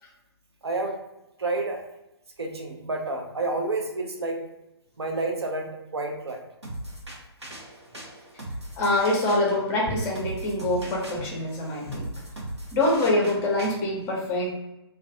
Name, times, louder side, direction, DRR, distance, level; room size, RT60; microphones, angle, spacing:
voice 1, 0.6-1.0 1.4-1.8 2.4-4.4 5.0-6.4, right 2 dB, 70° right, 2 dB, 0.6 m, -29 dB
sound 1, 6.6-13.7, right 1 dB, 85° right, 0.9 m, -39 dB
voice 2, 8.8-12.1 12.7-14.5, left 1 dB, 15° left, -3 dB, 0.6 m, -25 dB
2.3 x 2.2 x 2.6 m, 0.91 s
figure-of-eight pair, 130°, 14 cm